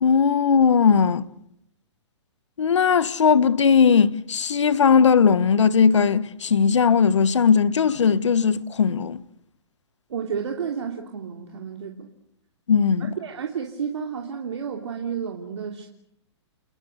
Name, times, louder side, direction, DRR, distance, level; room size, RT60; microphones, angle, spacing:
voice 1, 0.0-1.2 2.6-9.2 12.7-13.1, left 6 dB, 80° left, 1.3 m, -18 dB
voice 2, 10.1-12.1 13.0-15.9, right 7 dB, 75° right, 3.3 m, -31 dB
30.0 x 21.5 x 8.1 m
hypercardioid pair, 135°, 15 cm